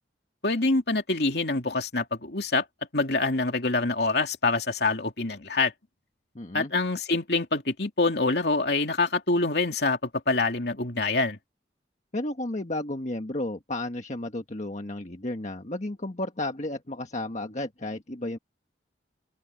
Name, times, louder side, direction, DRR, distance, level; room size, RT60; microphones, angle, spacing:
voice 1, 0.4-2.6 2.9-5.7 6.5-11.4, left 3 dB, 60° left, 3.0 m, -25 dB
voice 2, 6.3-6.7 12.1-18.4, left 1 dB, 40° left, 1.5 m, -33 dB
open air
head